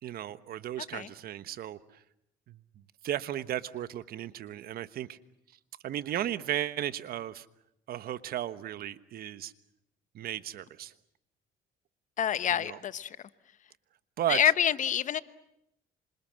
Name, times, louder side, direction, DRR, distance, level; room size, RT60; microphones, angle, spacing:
voice 1, 0.0-2.0 2.5-2.6 3.0-5.2 5.8-7.5 7.9-9.5 10.1-10.9 12.5-12.8 14.2-14.4, right 12 dB, 60° right, 1.2 m, -35 dB
voice 2, 12.2-13.2 14.3-15.2, left 10 dB, 50° left, 1.0 m, -27 dB
27.0 x 26.5 x 7.6 m
cardioid pair, 110°, 17 cm